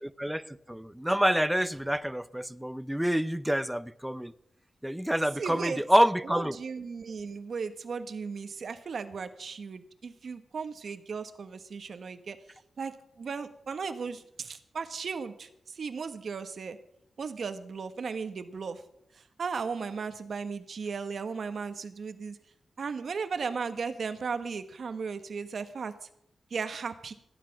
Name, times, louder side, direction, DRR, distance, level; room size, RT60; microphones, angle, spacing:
voice 1, 0.0-4.3 4.8-6.6, equal, 5° right, 0.6 m, -27 dB
voice 2, 5.4-5.8 6.2-12.4 12.8-16.8 17.2-18.8 19.4-22.4 22.8-25.9 26.5-27.1, right 5 dB, 65° right, 1.3 m, -36 dB
16.5 x 10.0 x 6.0 m
wide cardioid pair, 105°, 0 cm